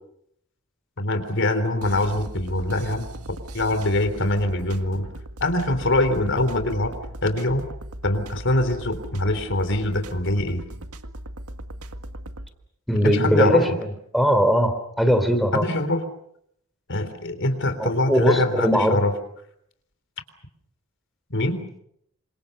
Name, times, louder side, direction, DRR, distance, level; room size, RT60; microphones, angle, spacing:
voice 1, 1.0-3.1 3.5-5.0 5.4-7.0 7.2-7.6 8.0-10.6 13.0-13.8 15.5-16.0 16.9-19.1 21.3-21.6, left 1 dB, 55° left, 9 dB, 3.7 m, -23 dB
sound 1, 1.8-12.5, right 1 dB, 85° right, 1.8 m, -38 dB
voice 2, 12.9-13.7 14.1-15.6 17.8-19.0, equal, ahead, 6 dB, 3.4 m, -20 dB
29.0 x 26.5 x 6.7 m, 0.73 s
head